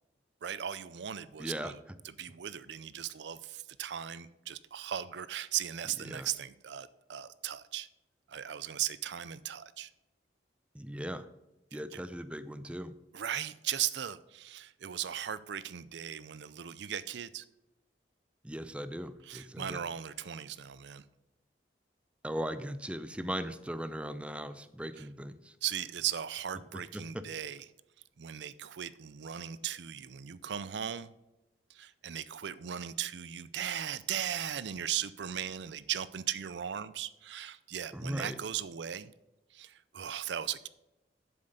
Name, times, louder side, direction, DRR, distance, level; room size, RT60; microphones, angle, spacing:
voice 1, 0.4-1.8 2.0-7.9 8.3-9.9 11.7-12.0 13.1-17.5 19.2-21.0 25.0-25.1 25.6-27.7 28.2-31.1 31.7-39.1 39.5-40.7, right 10 dB, 70° right, 17 dB, 0.5 m, -37 dB
voice 2, 1.4-1.7 6.1-6.3 10.7-11.3 11.7-12.9 18.4-19.8 22.2-25.5 26.9-27.2 37.9-38.4, equal, 5° right, 12 dB, 0.5 m, -38 dB
7.8 x 7.4 x 6.7 m, 0.93 s
head